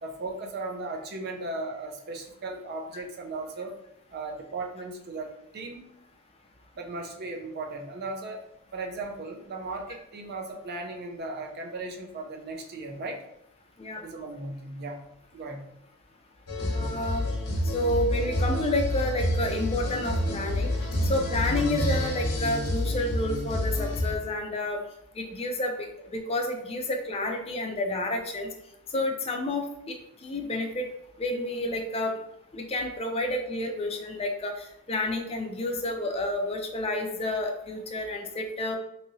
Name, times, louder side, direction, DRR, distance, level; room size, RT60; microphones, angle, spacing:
voice 1, 0.0-3.7 4.1-5.9 6.8-8.4 8.7-13.2 14.0-15.0 15.3-15.6, right 2 dB, 45° right, 2 dB, 0.5 m, -36 dB
sound 1, 16.5-24.2, left 1 dB, 90° left, 0.8 m, -28 dB
voice 2, 16.7-17.3 17.6-20.7 21.0-24.8 25.1-28.5 28.9-30.0 30.2-30.9 31.2-32.1 32.5-38.8, left 1 dB, 25° left, 2 dB, 0.4 m, -30 dB
2.9 x 2.7 x 2.6 m, 0.80 s
head